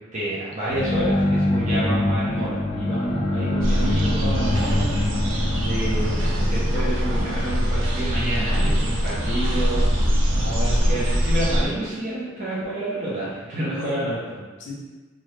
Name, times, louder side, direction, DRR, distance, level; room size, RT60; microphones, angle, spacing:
voice 1, 0.1-4.9 5.5-6.2 6.5-9.8 10.8-14.4, right 1 dB, 40° right, -10 dB, 0.8 m, -29 dB
sound 1, 0.7-8.5, left 1 dB, 35° left, 0.4 m, -26 dB
sound 2, 3.6-11.6, equal, 75° right, 0.5 m, -22 dB
voice 2, 5.9-6.5 10.3-10.9 13.7-14.0 14.6-14.7, equal, 65° left, -3 dB, 0.8 m, -33 dB
2.8 x 2.6 x 3.3 m, 1.3 s
head